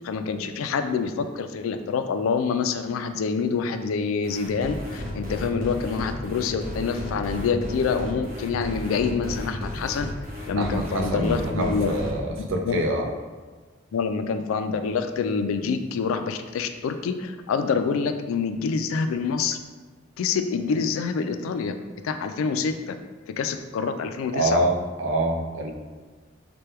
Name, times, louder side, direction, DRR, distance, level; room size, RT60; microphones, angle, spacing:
voice 1, 0.0-10.1 10.5-11.9 12.7-12.8 13.9-19.6 20.2-21.7 22.0-22.9 23.4-24.6, left 5 dB, 85° left, 8 dB, 0.3 m, -26 dB
sound 1, 4.2-12.1, left 1 dB, 45° right, 0.9 m, -33 dB
voice 2, 10.6-13.1 24.3-25.7, right 1 dB, 70° right, 1 dB, 0.5 m, -25 dB
3.3 x 2.2 x 4.3 m, 1.4 s
head